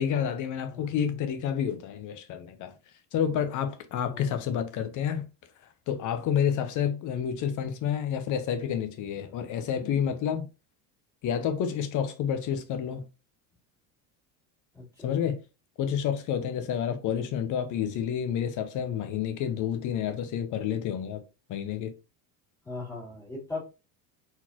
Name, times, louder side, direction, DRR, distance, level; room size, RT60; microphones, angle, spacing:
voice 1, 0.0-2.7 3.1-5.3 5.9-10.5 11.2-13.1 15.0-15.4 15.8-21.2 21.5-21.9, left 8 dB, 45° left, 0.8 m, -29 dB
voice 2, 0.7-1.1 4.0-4.6 14.7-15.3 22.6-23.6, left 3 dB, 10° left, 2.5 m, -40 dB
4.2 x 4.0 x 2.9 m
cardioid pair, 140°, 42 cm